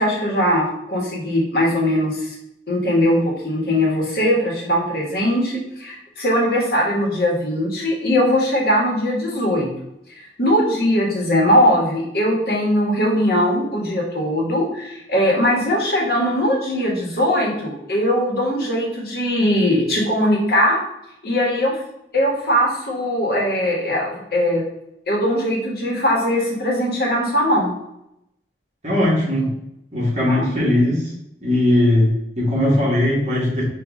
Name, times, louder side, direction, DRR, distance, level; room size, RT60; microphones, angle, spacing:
voice 1, 0.0-2.3 2.7-9.7 10.2-20.8 21.2-21.8 22.1-24.6 25.1-27.7 30.3-30.4, equal, 60° left, -2 dB, 1.3 m, -20 dB
voice 2, 28.8-29.5 29.9-31.1 31.4-33.6, left 1 dB, 40° right, -6 dB, 1.7 m, -19 dB
5.2 x 2.6 x 3.6 m, 0.80 s
head